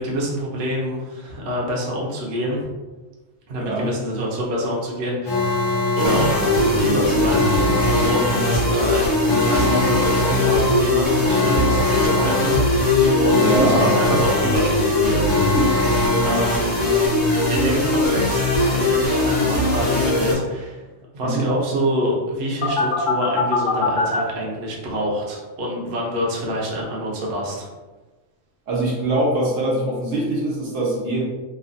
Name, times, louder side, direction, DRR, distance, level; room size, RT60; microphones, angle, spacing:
voice 1, 0.0-2.6 3.5-5.7 6.0-7.7 8.1-9.1 9.3-12.5 13.1-15.8 16.2-16.7 17.5-20.9 21.1-27.7, equal, 60° right, -3 dB, 0.9 m, -26 dB
voice 2, 3.6-3.9 13.3-14.0 21.2-21.5 28.7-31.2, right 1 dB, 85° right, -4 dB, 1.1 m, -22 dB
Alarm, 5.2-17.2 22.6-24.2, left 3 dB, 90° left, 1.2 m, -24 dB
sound 1, 6.0-20.3, left 1 dB, 40° left, 0.7 m, -20 dB
3.1 x 2.2 x 2.5 m, 1.2 s
omnidirectional pair, 1.3 m